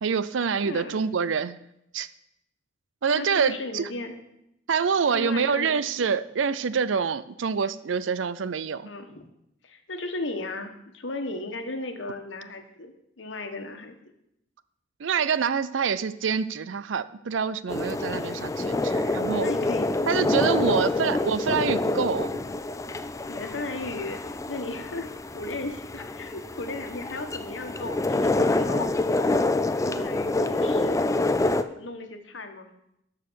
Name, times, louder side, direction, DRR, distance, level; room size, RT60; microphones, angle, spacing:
voice 1, 0.0-1.6 1.9-2.1 3.0-3.8 4.7-8.9 15.0-19.5 20.1-22.3, right 6 dB, 80° right, 16 dB, 0.5 m, -26 dB
voice 2, 0.6-1.0 3.1-4.2 5.1-5.8 6.0-6.2 8.9-9.3 9.6-14.0 19.4-20.1 20.4-20.8 23.3-31.2 31.6-32.7, left 2 dB, 75° left, 6 dB, 1.3 m, -36 dB
sound 1, 17.7-31.6, left 2 dB, 15° left, 0.4 m, -27 dB
13.0 x 4.9 x 6.3 m, 0.80 s
head